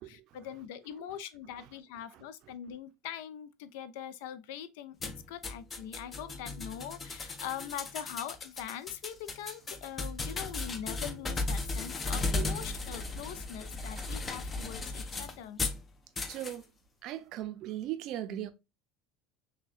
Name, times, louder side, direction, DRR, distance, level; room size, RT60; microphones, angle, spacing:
voice 1, 0.0-15.6, left 10 dB, 75° left, 0.5 m, -42 dB
sound 1, 5.0-15.8 16.2-16.6, left 3 dB, 20° left, 0.5 m, -36 dB
voice 2, 14.0-14.4 16.3-16.6 17.0-18.5, right 12 dB, 50° right, 0.5 m, -39 dB
6.0 x 2.2 x 2.4 m
cardioid pair, 150°, 0 cm